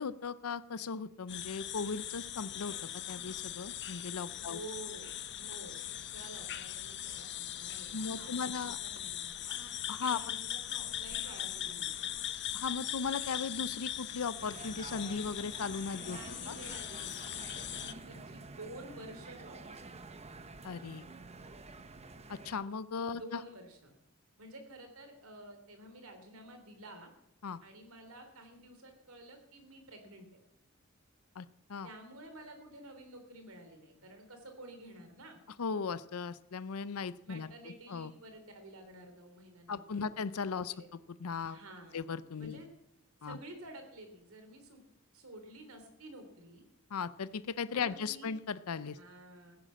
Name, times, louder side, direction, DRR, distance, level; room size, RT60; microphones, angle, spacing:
voice 1, 0.0-2.8 3.1-4.6 7.9-8.8 9.9-10.2 12.5-16.2 16.5-16.6 20.6-21.1 22.3-23.4 27.4-27.6 31.4-31.9 35.6-37.5 37.9-38.1 39.7-40.7 41.2-41.6 41.9-42.6 43.2-43.4 46.9-49.0, left 5 dB, 90° left, 16 dB, 0.6 m, -37 dB
sound 1, 1.3-17.9, left 11 dB, 55° left, 0.9 m, -40 dB
voice 2, 4.4-5.1 5.4-9.6 10.0-12.1 16.0-19.8 23.1-23.9 24.4-27.1 27.6-30.3 31.8-35.4 37.2-40.1 40.6-40.9 41.4-42.0 42.4-42.7 43.2-44.8 45.1-46.6 47.7-48.3 48.9-49.6, right 1 dB, 75° right, 6 dB, 3.4 m, -51 dB
sound 2, 14.4-22.6, right 3 dB, 30° right, 1.0 m, -49 dB
15.5 x 10.0 x 7.5 m, 0.83 s
head